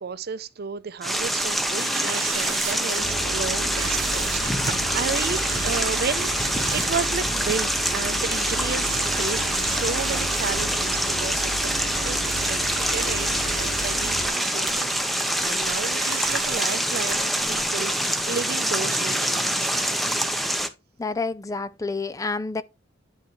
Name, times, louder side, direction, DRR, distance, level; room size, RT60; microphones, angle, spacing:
voice 1, 0.0-6.3 6.7-12.6 12.9-19.7, right 5 dB, 55° right, 0.6 m, -33 dB
sound 1, 1.0-20.7, equal, ahead, 0.7 m, -25 dB
sound 2, 1.2-18.4, right 8 dB, 75° right, 1.1 m, -38 dB
sound 3, 3.0-14.3, right 1 dB, 85° left, 3.4 m, -34 dB
voice 2, 21.0-22.6, left 3 dB, 15° left, 0.4 m, -28 dB
10.5 x 4.5 x 3.1 m
head